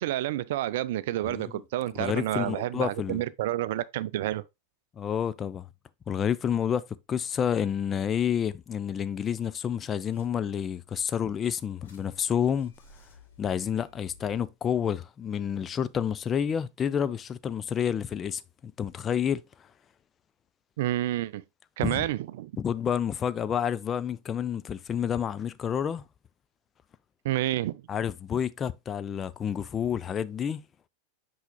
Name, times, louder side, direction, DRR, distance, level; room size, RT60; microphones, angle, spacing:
voice 1, 0.0-4.4 20.8-21.4 21.8-22.5 27.2-27.8, right 14 dB, 55° right, 0.4 m, -29 dB
voice 2, 1.9-3.2 5.0-5.7 6.1-12.7 13.4-19.4 21.8-22.1 22.6-26.0 27.9-30.6, left 8 dB, 25° left, 0.4 m, -29 dB
sound 1, 10.0-10.8 11.3-14.5, left 3 dB, 65° left, 3.7 m, -57 dB
8.0 x 5.6 x 2.2 m
figure-of-eight pair, 90°, 0 cm